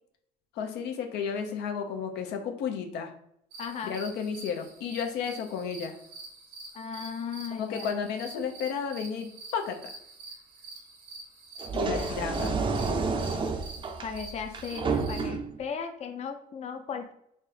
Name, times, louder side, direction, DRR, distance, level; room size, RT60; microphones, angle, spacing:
voice 1, 0.5-3.1 3.8-5.9 7.5-9.9 11.8-13.2, left 6 dB, 80° left, 5 dB, 0.7 m, -33 dB
sound 1, 3.5-15.3, right 3 dB, 75° right, 1.4 m, -47 dB
voice 2, 3.6-3.9 6.7-8.1 11.7-12.1 14.0-17.1, left 6 dB, 40° left, 5 dB, 0.5 m, -37 dB
sound 2, 11.6-15.6, right 4 dB, 30° right, 0.5 m, -30 dB
3.5 x 2.6 x 4.1 m, 0.72 s
cardioid pair, 110°, 17 cm